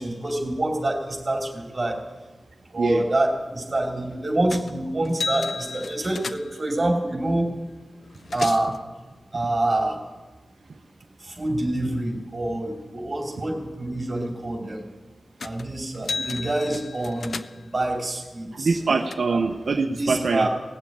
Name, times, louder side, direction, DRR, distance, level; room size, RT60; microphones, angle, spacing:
voice 1, 0.0-2.0 2.7-7.5 8.3-8.8 9.3-10.0 11.2-14.8 15.4-18.8 19.3-19.4 20.0-20.5, right 1 dB, 30° right, 2 dB, 2.9 m, -26 dB
sound 1, 4.5-4.8 5.1-6.7 7.7-7.8 8.0-8.8 15.4-15.7 15.9-17.8 18.5-19.2, left 4 dB, 60° left, 0.5 m, -34 dB
voice 2, 18.5-20.5, right 4 dB, 65° right, 3 dB, 0.8 m, -23 dB
17.5 x 7.6 x 8.5 m, 1.2 s
wide cardioid pair, 135°, 0 cm